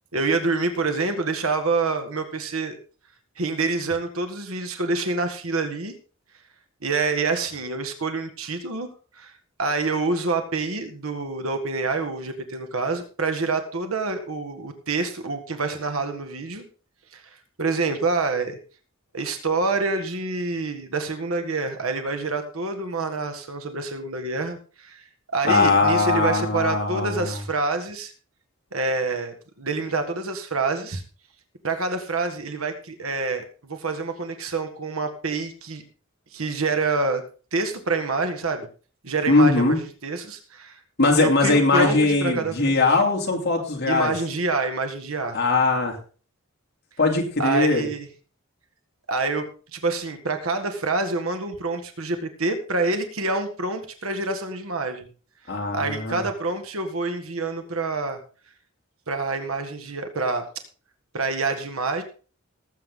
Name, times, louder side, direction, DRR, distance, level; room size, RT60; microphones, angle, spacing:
voice 1, 0.1-2.8 3.4-6.0 6.8-8.9 9.2-9.3 9.6-16.6 17.1-17.2 17.6-18.6 19.1-25.0 25.3-28.1 28.7-31.0 31.6-35.8 36.3-37.2 37.5-38.7 39.0-39.6 40.0-40.8 41.2-42.7 43.9-45.4 47.4-48.1 49.1-55.1 55.7-58.2 59.1-60.5 61.1-62.0, right 3 dB, 85° right, 7 dB, 1.7 m, -27 dB
voice 2, 25.4-27.3 39.3-39.8 41.0-44.1 45.3-46.0 47.0-47.9 55.5-56.2, left 3 dB, 55° left, 1 dB, 2.9 m, -20 dB
18.5 x 8.0 x 3.8 m, 0.38 s
head